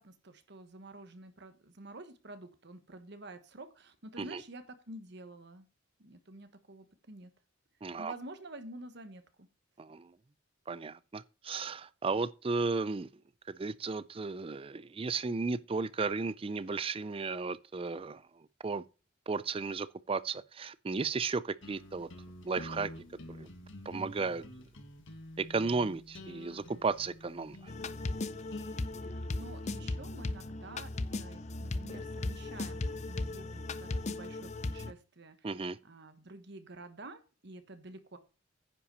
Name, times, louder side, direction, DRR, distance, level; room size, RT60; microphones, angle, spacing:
voice 1, 0.0-5.7 6.0-7.3 8.0-9.5 29.0-38.2, right 2 dB, 60° right, 1.3 m, -49 dB
voice 2, 7.8-8.1 9.8-10.1 10.7-13.1 13.5-18.2 18.6-18.8 19.3-22.1 22.4-22.9 23.3-23.5 23.9-24.4 25.4-27.6 35.4-35.8, right 4 dB, 30° right, 0.4 m, -34 dB
sound 1, 21.6-28.8, left 1 dB, 70° left, 1.8 m, -48 dB
sound 2, 27.7-34.9, left 2 dB, 35° left, 0.6 m, -37 dB
9.9 x 5.7 x 5.4 m
head